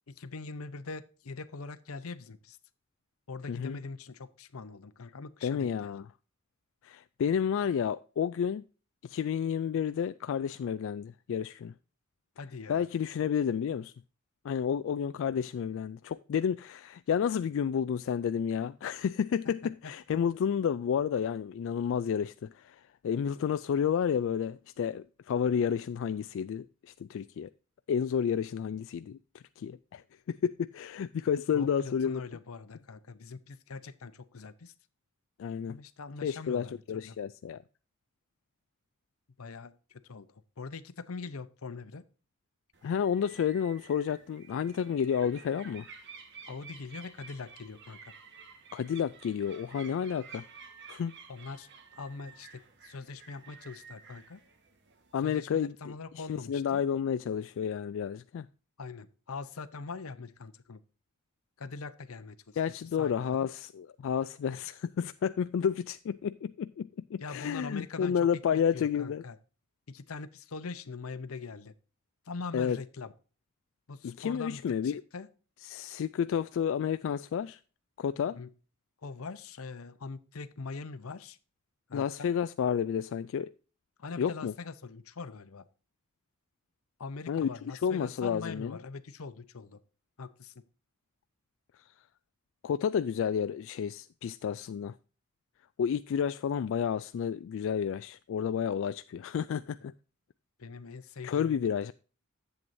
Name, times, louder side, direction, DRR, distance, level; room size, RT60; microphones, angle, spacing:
voice 1, 0.1-2.6 3.3-6.0 12.4-12.9 19.6-19.9 31.5-34.7 35.7-37.2 39.4-42.0 46.5-48.1 51.3-54.4 55.2-56.8 58.8-60.8 61.6-62.6 63.0-63.5 67.2-69.4 69.9-71.7 72.3-73.1 73.9-75.3 78.3-78.5 79.0-81.4 81.9-82.3 84.0-85.6 87.0-89.8 90.2-90.6 100.6-101.6, left 4 dB, 85° left, 0.7 m, -42 dB
voice 2, 3.5-3.8 5.4-6.1 6.8-8.6 9.0-11.7 12.7-13.9 14.4-27.5 27.9-32.2 35.4-35.8 36.2-37.6 42.8-45.9 48.7-50.4 50.9-51.1 55.1-55.9 56.3-58.5 62.6-69.2 72.5-72.8 74.0-75.0 75.6-77.6 78.0-78.4 81.9-83.5 84.2-84.5 87.3-88.8 92.6-95.0 95.8-99.9 101.2-101.9, left 7 dB, 65° left, 0.3 m, -31 dB
sound 1, 42.7-55.2, right 5 dB, 60° right, 1.3 m, -52 dB
10.5 x 7.9 x 2.6 m
head